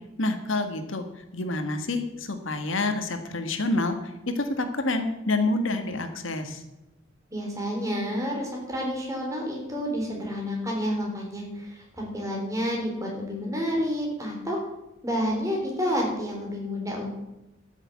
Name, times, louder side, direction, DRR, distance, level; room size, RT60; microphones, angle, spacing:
voice 1, 0.2-6.6, left 2 dB, 75° left, 7 dB, 1.6 m, -28 dB
voice 2, 7.3-14.6 15.0-17.1, equal, 15° right, -1 dB, 3.6 m, -29 dB
12.5 x 7.2 x 8.3 m, 0.95 s
head